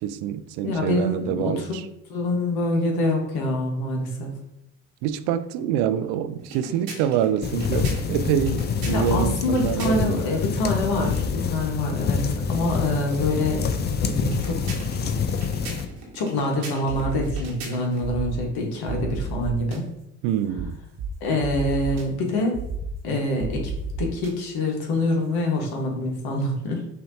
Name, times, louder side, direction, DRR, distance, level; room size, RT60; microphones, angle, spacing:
voice 1, 0.0-1.9 5.0-10.2 20.2-20.8, right 9 dB, 65° right, 0.5 m, -26 dB
voice 2, 0.6-1.7 2.1-4.3 8.9-12.2 12.5-13.6 14.0-14.8 16.1-19.8 21.2-22.6 23.0-23.6 24.0-26.8, left 1 dB, 60° left, 1.4 m, -25 dB
sound 1, 6.4-10.3 14.2-18.1, right 3 dB, 80° right, 1.4 m, -41 dB
sound 2, 7.4-15.9, left 6 dB, 25° left, 0.4 m, -26 dB
sound 3, 16.9-17.5 18.0-18.4 18.9-19.8 20.5-20.6 21.0-21.1 21.4-22.0 22.5-22.9 23.4-24.3, right 5 dB, 35° right, 0.8 m, -31 dB
5.8 x 2.8 x 2.7 m
hypercardioid pair, 70°, 43 cm